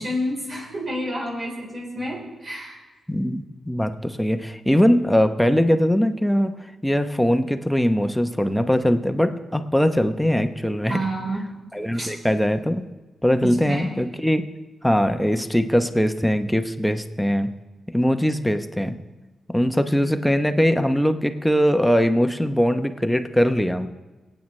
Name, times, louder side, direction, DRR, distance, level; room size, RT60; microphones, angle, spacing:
voice 1, 0.0-2.8 10.9-11.4 11.9-12.1 13.4-14.0, equal, 45° right, -3 dB, 3.9 m, -29 dB
voice 2, 3.1-6.5 6.8-11.0 11.7-12.8 13.2-14.4 14.8-17.5 17.9-19.0 19.5-23.9, equal, 5° left, 8 dB, 0.8 m, -21 dB
24.0 x 8.9 x 3.2 m, 1.2 s
cardioid pair, 75°, 0 cm